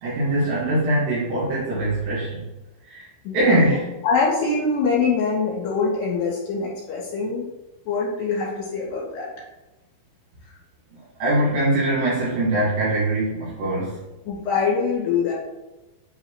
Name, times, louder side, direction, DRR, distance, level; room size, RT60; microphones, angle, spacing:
voice 1, 0.0-2.5 2.8-3.1 3.3-3.9 11.2-14.0, right 1 dB, 75° right, -10 dB, 3.9 m, -22 dB
voice 2, 3.2-3.6 4.0-7.5 7.9-9.3 14.3-15.3, left 4 dB, 65° left, -6 dB, 3.1 m, -24 dB
8.5 x 3.9 x 3.0 m, 1.0 s
omnidirectional pair, 5.0 m